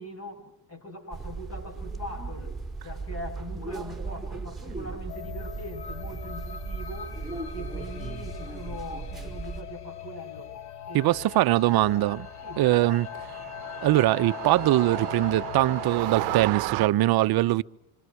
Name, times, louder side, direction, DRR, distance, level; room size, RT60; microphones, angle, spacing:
voice 1, 0.0-2.5 2.8-7.2 7.5-10.5 10.9-11.3 12.4-12.7, left 1 dB, 30° left, 7.6 m, -41 dB
sound 1, 1.1-9.6, right 4 dB, ahead, 4.4 m, -37 dB
sound 2, 5.1-16.4, left 10 dB, 55° left, 1.9 m, -40 dB
voice 2, 10.9-12.3 12.6-13.1 13.8-17.6, right 16 dB, 50° right, 0.8 m, -22 dB
sound 3, 11.3-16.9, right 20 dB, 75° right, 0.9 m, -35 dB
27.5 x 26.5 x 4.7 m
cardioid pair, 120°, 46 cm